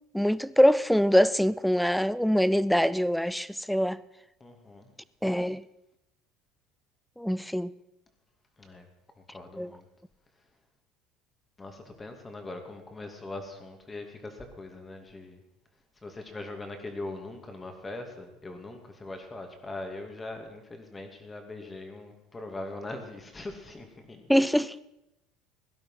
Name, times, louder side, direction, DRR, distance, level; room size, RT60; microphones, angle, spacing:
voice 1, 0.1-4.0 5.2-5.6 7.2-7.7 9.6-9.7 24.3-24.7, equal, ahead, 0.5 m, -24 dB
voice 2, 4.4-4.9 8.6-8.9 9.3-9.9 11.6-15.4 16.0-24.2, left 2 dB, 20° left, 2.5 m, -41 dB
16.5 x 11.5 x 5.8 m
supercardioid pair, 110°, 0 cm